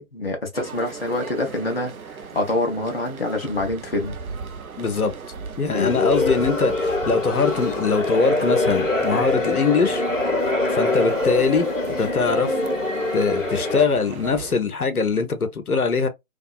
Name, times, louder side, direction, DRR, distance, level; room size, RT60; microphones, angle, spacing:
voice 1, 0.0-4.2 5.7-5.9, left 2 dB, 45° left, 0.6 m, -26 dB
sound 1, 0.5-14.6, right 5 dB, 80° right, 0.6 m, -38 dB
voice 2, 4.8-5.1 5.6-10.0 10.7-12.6 13.1-16.1, left 4 dB, 90° left, 0.7 m, -22 dB
sound 2, 5.7-13.9, left 2 dB, 65° left, 1.0 m, -24 dB
2.6 x 2.3 x 2.3 m
figure-of-eight pair, 160°, 43 cm